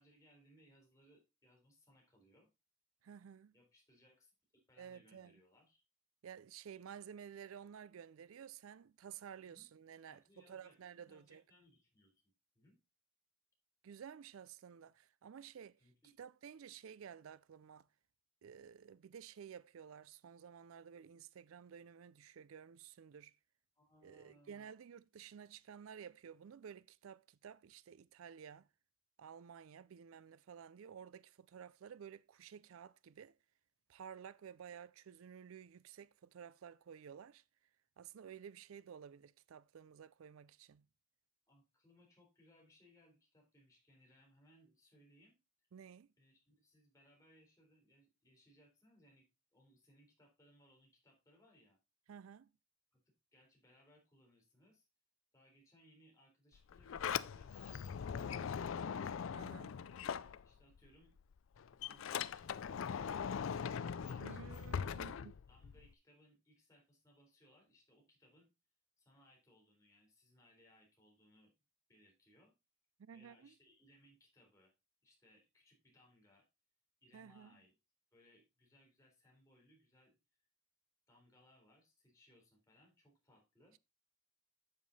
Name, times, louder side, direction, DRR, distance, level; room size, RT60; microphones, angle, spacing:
voice 1, 0.0-2.5 3.5-4.3 4.7-5.8 9.4-9.7 10.1-12.1 12.5-12.8 15.8-16.1 23.8-24.7 41.5-45.4 46.2-51.8 52.9-53.0 53.3-54.9 55.3-59.0 60.0-61.1 61.7-64.8 65.5-68.5 69.0-71.5 71.9-72.5 73.1-74.7 75.0-76.5 77.0-77.7 78.1-80.2 81.1-83.8, equal, 15° left, 3.9 m, -68 dB
voice 2, 3.0-3.5 4.8-5.4 6.2-11.4 13.8-15.8 16.2-17.9 18.4-23.3 24.0-28.7 29.2-33.3 33.9-37.4 38.0-40.9 45.7-46.1 52.1-52.5 59.3-59.8 64.2-65.3 73.0-73.5 77.1-77.5, right 8 dB, 75° right, 0.4 m, -53 dB
Sliding door, 56.5-60.9 61.2-65.9, left 7 dB, 65° left, 0.4 m, -41 dB
7.6 x 7.4 x 4.0 m
head